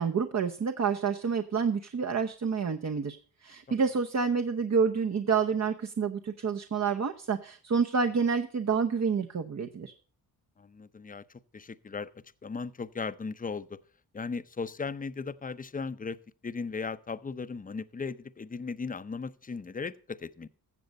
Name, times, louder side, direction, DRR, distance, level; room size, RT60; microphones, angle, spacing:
voice 1, 0.0-3.2 3.4-9.9, right 5 dB, 45° right, 0.9 m, -28 dB
voice 2, 10.6-11.2 11.5-12.1 12.4-13.8 14.1-16.2 16.4-20.5, left 4 dB, 20° left, 0.7 m, -37 dB
14.5 x 7.1 x 5.3 m
cardioid pair, 55°, 39 cm